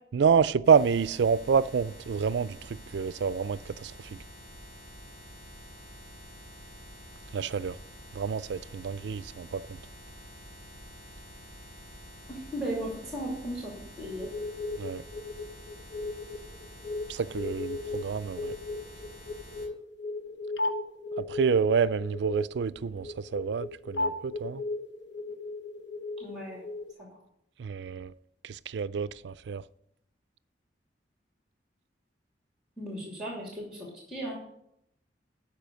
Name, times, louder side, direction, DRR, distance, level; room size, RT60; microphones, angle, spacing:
voice 1, 0.1-4.2 7.3-7.8 8.1-9.8 14.8-15.0 17.1-18.5 21.2-24.6 27.6-28.1 28.4-29.6, right 6 dB, 75° right, 0.4 m, -28 dB
sound 1, 0.6-19.7, equal, 45° left, 3.5 m, -48 dB
voice 2, 12.3-14.3 26.2-26.6 27.0-27.1 32.8-34.4, right 1 dB, 5° right, 2.6 m, -36 dB
sound 2, 14.1-26.9, left 2 dB, 85° left, 1.0 m, -36 dB
12.0 x 4.9 x 6.2 m
head